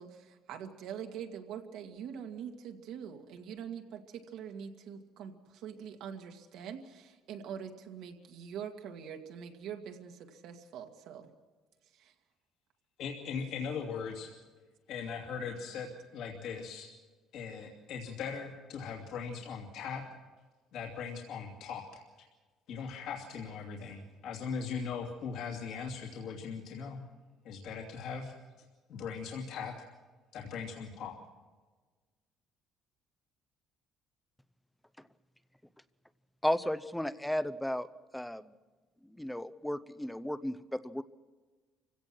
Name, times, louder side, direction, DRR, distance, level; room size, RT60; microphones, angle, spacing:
voice 1, 0.0-11.3 11.9-12.1, right 8 dB, 75° right, 4 dB, 2.1 m, -44 dB
voice 2, 13.0-14.3 14.9-16.9 17.3-20.1 20.7-22.0 22.7-27.0 27.4-28.3 28.9-29.8 30.3-31.2, left 6 dB, 70° left, -1 dB, 2.8 m, -39 dB
voice 3, 36.4-37.9 38.1-38.5 39.0-41.0, left 1 dB, 5° left, 15 dB, 0.6 m, -34 dB
27.5 x 16.5 x 6.1 m, 1.4 s
cardioid pair, 150°, 0 cm